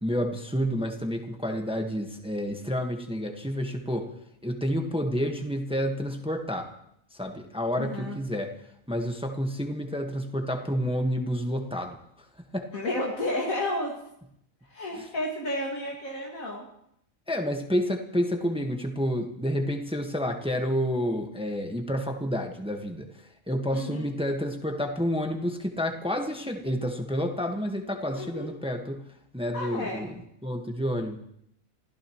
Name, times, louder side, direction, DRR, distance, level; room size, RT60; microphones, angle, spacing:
voice 1, 0.0-4.1 4.4-6.7 7.2-8.5 8.9-12.0 12.5-12.6 14.9-15.1 17.3-23.1 23.5-29.0 29.3-30.1 30.4-31.2, equal, 5° right, 3 dB, 1.4 m, -29 dB
voice 2, 7.8-8.2 12.7-13.9 14.6-16.7 23.7-24.1 28.1-28.5 29.5-30.1, left 1 dB, 75° left, -3 dB, 2.6 m, -32 dB
28.0 x 15.0 x 3.1 m, 0.74 s
omnidirectional pair, 1.4 m